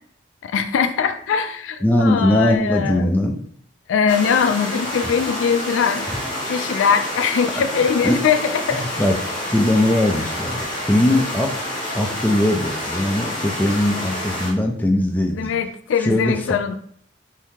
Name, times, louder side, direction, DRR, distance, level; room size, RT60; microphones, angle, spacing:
voice 1, 0.4-3.1 3.9-6.1 6.5-9.0 15.4-16.8, left 6 dB, 85° left, 9 dB, 0.3 m, -21 dB
voice 2, 1.8-3.4 5.0-5.1 6.1-6.2 8.0-8.2 8.7-9.2 9.4-11.5 11.9-15.5 16.0-16.5, left 1 dB, 10° left, 2 dB, 0.3 m, -20 dB
sound 1, 4.1-14.5, left 1 dB, 25° left, 1.0 m, -28 dB
2.8 x 2.7 x 3.5 m, 0.62 s
head